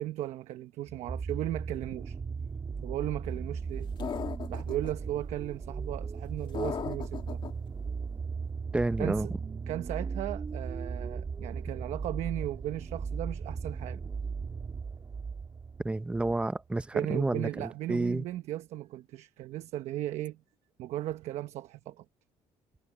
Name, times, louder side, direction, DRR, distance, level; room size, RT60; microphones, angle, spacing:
voice 1, 0.0-2.2 2.8-3.9 4.5-7.4 9.0-9.3 9.7-14.0 16.9-20.4 20.8-22.0, right 14 dB, 75° right, 1.1 m, -36 dB
sound 1, 0.9-16.5 17.3-17.4, right 5 dB, 30° right, 2.0 m, -37 dB
sound 2, 4.0-4.9 6.5-7.5, left 7 dB, 45° left, 2.4 m, -36 dB
voice 2, 8.7-9.3 15.8-18.3, right 2 dB, 10° right, 0.6 m, -30 dB
cardioid pair, 110°, 11 cm